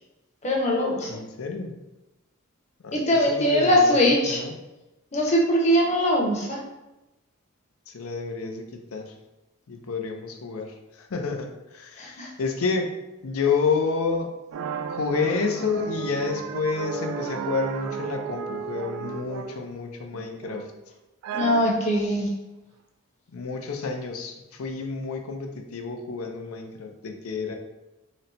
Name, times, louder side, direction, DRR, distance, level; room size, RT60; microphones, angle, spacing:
voice 1, 0.4-1.1 2.9-4.4 5.1-6.6 12.0-12.3 21.3-22.3, equal, 30° left, -1 dB, 0.8 m, -21 dB
voice 2, 1.1-1.8 2.8-4.0 4.3-4.5 7.9-9.1 9.7-12.9 13.2-14.3 14.9-20.7 23.3-27.5, left 4 dB, 90° left, 4 dB, 0.6 m, -29 dB
sound 1, 14.5-19.7 20.1-20.8 21.2-22.0, right 7 dB, 85° right, 0.3 m, -33 dB
4.0 x 2.2 x 4.0 m, 0.99 s
head